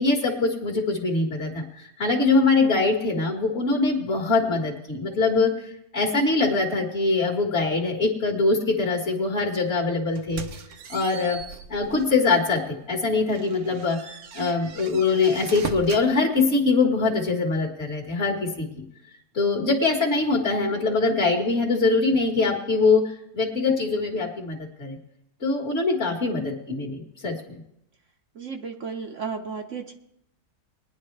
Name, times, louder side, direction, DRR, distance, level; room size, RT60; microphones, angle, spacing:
voice 1, 0.0-10.5 10.9-11.4 11.7-18.8 19.3-25.0 25.4-27.6, left 3 dB, 45° left, -3 dB, 1.9 m, -23 dB
sound 1, 10.2-12.2 12.7-12.8 13.3-16.1, right 6 dB, 80° right, 1.4 m, -38 dB
voice 2, 28.3-29.9, right 5 dB, 60° right, 3 dB, 1.1 m, -34 dB
20.5 x 10.5 x 3.3 m, 0.80 s
omnidirectional pair, 1.5 m